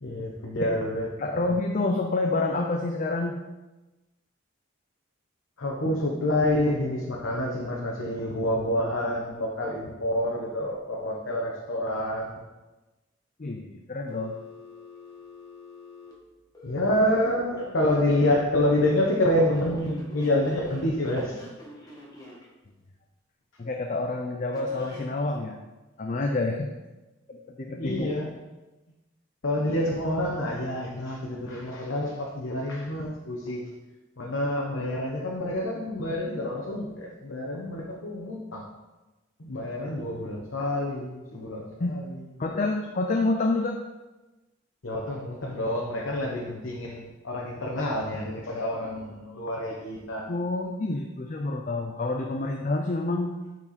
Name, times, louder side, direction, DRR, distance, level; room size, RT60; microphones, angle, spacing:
voice 1, 0.0-1.1 5.6-12.4 16.6-21.4 27.7-28.3 29.4-33.7 34.2-38.7 39.4-42.1 42.5-42.6 44.8-50.3, left 1 dB, 75° left, -3 dB, 1.0 m, -28 dB
voice 2, 1.2-3.4 13.4-14.3 23.6-25.6 26.0-26.7 27.3-28.1 41.8-42.0 42.4-43.8 50.3-53.4, left 2 dB, 40° left, 2 dB, 0.5 m, -28 dB
Telephone, 14.1-16.8 17.6-18.2 18.7-22.5 24.5-25.1, left 2 dB, 20° left, 1.4 m, -47 dB
8.6 x 4.5 x 4.2 m, 1.1 s
head